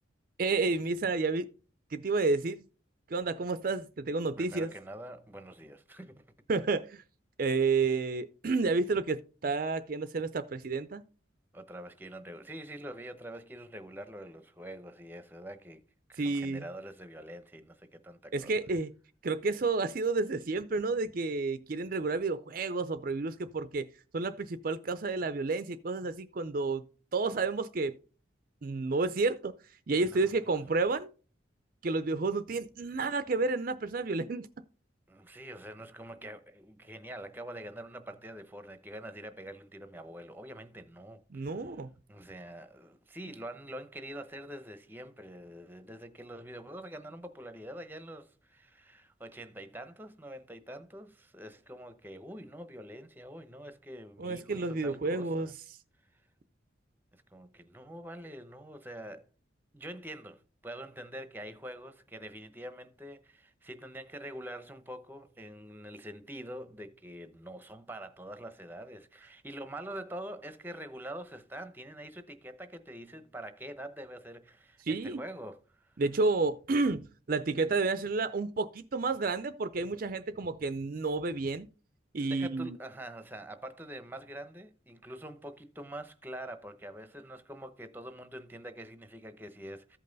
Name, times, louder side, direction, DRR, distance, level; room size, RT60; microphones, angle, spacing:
voice 1, 0.4-1.5 1.9-2.6 3.1-4.7 6.5-7.0 7.4-11.0 16.2-16.7 18.3-18.9 19.2-23.9 24.1-26.8 27.1-28.0 28.6-29.5 29.9-31.1 31.8-34.5 41.3-41.9 54.2-55.5 74.9-75.2 76.0-81.7 82.1-82.8, right 3 dB, 45° right, 0.5 m, -30 dB
voice 2, 4.4-6.3 11.5-15.8 16.1-18.5 30.0-30.3 35.1-41.8 42.1-55.5 56.1-56.2 57.1-59.3 59.7-76.0 82.2-90.0, right 1 dB, 10° right, 0.8 m, -45 dB
14.0 x 5.4 x 3.9 m
head